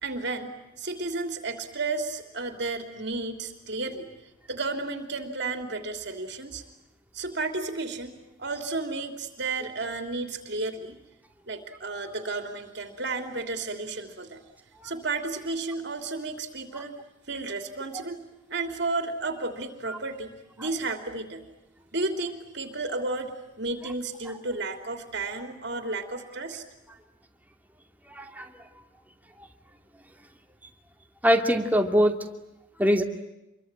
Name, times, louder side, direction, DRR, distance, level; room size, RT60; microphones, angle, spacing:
voice 1, 0.0-4.1 4.5-6.6 7.1-11.0 11.5-14.4 14.8-16.9 17.3-18.2 18.5-21.5 21.9-26.6, right 3 dB, 55° right, 6 dB, 3.2 m, -32 dB
voice 2, 28.1-28.6 31.2-32.2 32.8-33.0, equal, 10° right, 4 dB, 2.6 m, -23 dB
27.5 x 23.5 x 8.9 m, 0.92 s
head